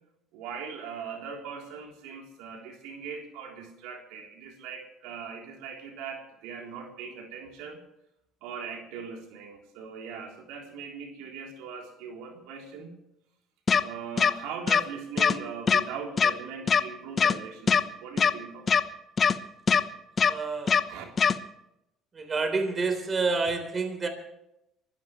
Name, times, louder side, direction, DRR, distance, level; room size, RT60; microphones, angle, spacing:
voice 1, 0.3-7.8 8.4-13.0 13.8-18.8 20.9-21.0, right 6 dB, 85° right, 1 dB, 3.6 m, -40 dB
sound 1, 13.7-13.8 14.2-14.3 14.7-14.8 15.2-15.3 15.7-15.8 16.2-16.3 16.7-16.8 17.2-17.3 17.7-17.8 18.2-18.3 18.7-18.8 19.2-19.3 19.7-19.8 20.2-20.3 20.7-20.8 21.2-21.3, left 6 dB, 35° left, 1.0 m, -21 dB
voice 2, 20.2-20.8 22.1-24.1, right 4 dB, 30° right, 7 dB, 3.9 m, -28 dB
24.0 x 16.0 x 3.2 m, 0.84 s
cardioid pair, 100°, 0 cm